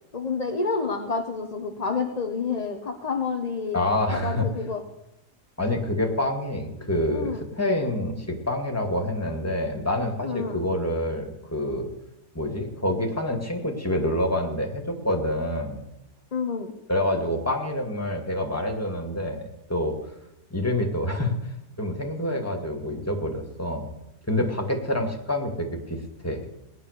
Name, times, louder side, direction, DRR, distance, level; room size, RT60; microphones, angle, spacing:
voice 1, 0.1-3.8 4.1-4.8 7.1-7.4 10.2-10.6 16.3-16.7, left 4 dB, 30° left, 3 dB, 1.1 m, -29 dB
voice 2, 3.7-4.5 5.6-11.9 12.3-15.8 16.9-20.0 20.5-23.9 24.3-26.5, left 1 dB, 10° left, 2 dB, 2.3 m, -27 dB
19.0 x 11.0 x 6.7 m, 0.91 s
omnidirectional pair, 1.7 m